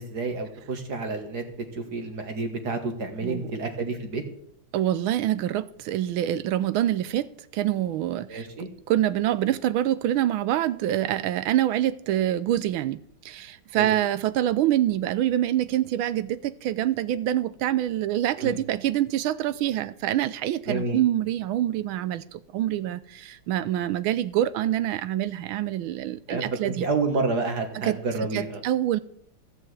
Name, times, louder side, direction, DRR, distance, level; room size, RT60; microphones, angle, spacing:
voice 1, 0.0-1.4 1.7-4.2 8.3-8.7 13.8-13.9 18.4-18.6 20.7-21.0 26.3-28.6, right 3 dB, 50° right, 1.9 m, -29 dB
voice 2, 3.2-3.5 4.7-26.9 27.7-28.0 28.3-29.0, right 12 dB, 80° right, 1.4 m, -26 dB
14.5 x 6.4 x 8.0 m
omnidirectional pair, 2.3 m